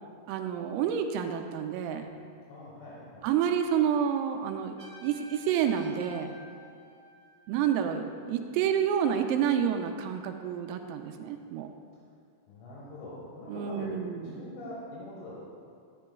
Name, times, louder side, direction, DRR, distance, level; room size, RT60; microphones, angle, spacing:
voice 1, 0.3-2.1 3.2-4.8 5.0-6.3 7.5-11.7 13.5-14.4, right 8 dB, 85° right, 5 dB, 3.2 m, -29 dB
voice 2, 2.5-3.3 12.5-14.0 14.2-15.4, left 1 dB, 85° left, -6 dB, 4.1 m, -43 dB
Trumpet, 4.8-7.6, right 2 dB, 40° left, 0.5 m, -51 dB
14.0 x 10.5 x 2.3 m, 2.3 s
omnidirectional pair, 5.9 m